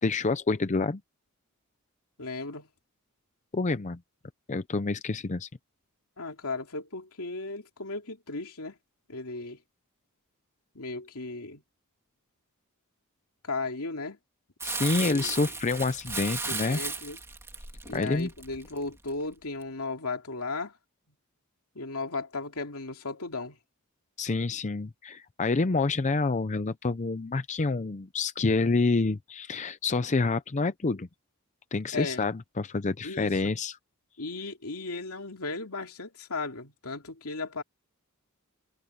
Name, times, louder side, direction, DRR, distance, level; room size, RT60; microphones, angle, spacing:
voice 1, 0.0-1.0 3.5-4.0 4.5-5.5 14.6-16.8 17.9-18.3 24.2-31.1 31.7-33.8, left 3 dB, 35° left, 0.6 m, -28 dB
voice 2, 2.2-2.7 6.2-8.7 9.1-9.6 10.7-11.6 13.4-14.2 15.0-15.3 16.5-17.2 17.9-20.7 21.7-23.6 31.9-32.3 33.0-33.5 34.2-37.6, left 3 dB, 80° left, 2.7 m, -36 dB
Crumpling crinkling, 14.6-19.1 19.6-19.7, right 3 dB, 10° right, 2.3 m, -35 dB
head